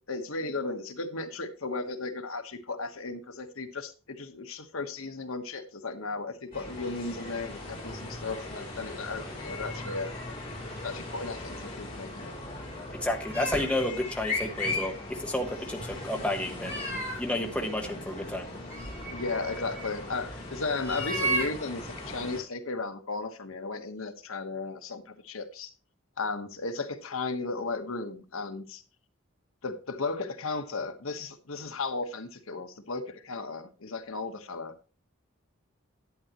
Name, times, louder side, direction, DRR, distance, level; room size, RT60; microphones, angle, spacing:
voice 1, 0.1-10.4 10.8-12.4 19.1-25.7 26.2-28.8 29.6-34.7, left 3 dB, 75° left, 1.2 m, -35 dB
sound 1, 6.5-22.4, left 2 dB, 25° left, 4.9 m, -38 dB
voice 2, 12.9-16.8 17.2-18.5, left 1 dB, 5° left, 1.1 m, -31 dB
sound 2, 13.3-13.7 14.8-14.9 15.2-15.3 16.6-17.4 18.6-20.0 20.8-21.5, right 2 dB, 15° right, 5.2 m, -33 dB
11.0 x 9.1 x 3.0 m
head